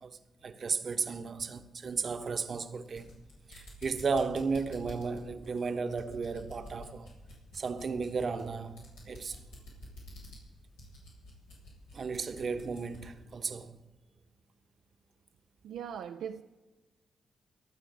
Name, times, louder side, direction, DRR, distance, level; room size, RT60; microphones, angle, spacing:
voice 1, 0.0-3.1 3.5-7.1 7.5-9.4 11.9-13.8, right 5 dB, 50° right, 1.0 m, -34 dB
sound 1, 2.7-13.2, left 1 dB, 85° left, 6.3 m, -50 dB
voice 2, 15.6-16.4, right 8 dB, 75° right, 0.5 m, -39 dB
24.5 x 9.0 x 5.5 m
hypercardioid pair, 40°, 0 cm